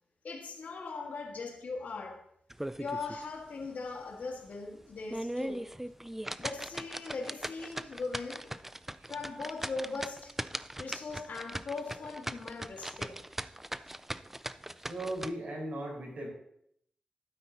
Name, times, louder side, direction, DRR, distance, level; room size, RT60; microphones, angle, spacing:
voice 1, 0.2-2.2 2.8-5.7 6.4-8.6 9.1-10.3 10.8-13.2, left 4 dB, 75° left, 1.7 m, -40 dB
sound 1, 2.5-3.2 3.6-3.7 4.2-4.3 4.9-15.3, right 1 dB, 10° right, 0.4 m, -39 dB
voice 2, 14.8-16.3, right 1 dB, 75° right, 4.6 m, -37 dB
12.0 x 9.3 x 2.8 m
cardioid pair, 70°, 3 cm